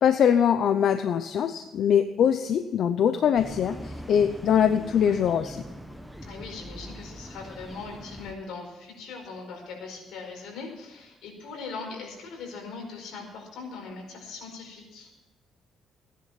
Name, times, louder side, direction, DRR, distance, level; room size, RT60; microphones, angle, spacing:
voice 1, 0.0-5.6, left 8 dB, 55° left, 9 dB, 0.7 m, -23 dB
sound 1, 3.3-8.3, equal, ahead, 1.1 m, -41 dB
voice 2, 6.2-15.1, left 4 dB, 80° left, 1 dB, 4.8 m, -40 dB
16.0 x 10.5 x 5.8 m, 1.1 s
cardioid pair, 135°, 0 cm